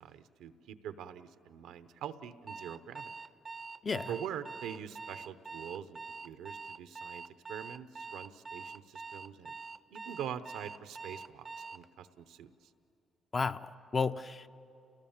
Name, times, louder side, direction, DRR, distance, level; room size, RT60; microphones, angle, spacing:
voice 1, 0.0-3.1 4.1-6.0 6.2-9.5 9.9-12.5, right 9 dB, 90° right, 12 dB, 0.8 m, -44 dB
Alarm, 2.5-11.9, right 4 dB, 30° right, 0.5 m, -45 dB
voice 2, 13.3-14.5, left 4 dB, 35° left, 11 dB, 0.5 m, -33 dB
29.5 x 18.5 x 7.2 m, 2.8 s
cardioid pair, 90°, 0 cm